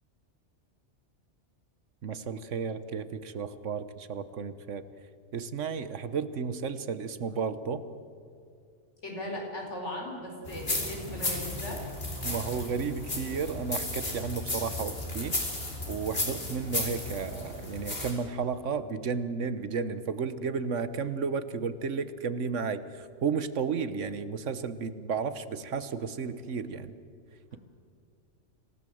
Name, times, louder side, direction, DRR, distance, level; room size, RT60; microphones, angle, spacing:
voice 1, 2.0-4.8 5.3-7.8 12.2-15.4 15.9-26.9, right 5 dB, 90° right, 13 dB, 1.4 m, -33 dB
voice 2, 9.0-11.8 27.5-27.6, left 1 dB, 75° left, 0 dB, 5.1 m, -38 dB
sound 1, 10.4-18.1, left 1 dB, 55° left, 4.3 m, -34 dB
27.0 x 16.5 x 7.8 m, 2.4 s
omnidirectional pair, 1.2 m